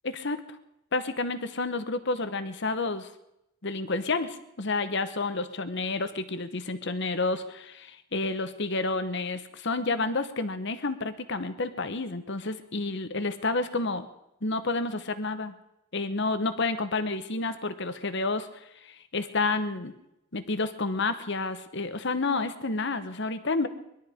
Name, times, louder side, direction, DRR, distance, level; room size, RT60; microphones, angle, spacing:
voice 1, 0.0-0.4 0.9-3.1 3.6-14.1 14.4-15.5 15.9-18.5 18.8-19.9 20.3-23.7, left 3 dB, 55° left, 11 dB, 1.1 m, -30 dB
21.0 x 12.5 x 5.1 m, 0.85 s
head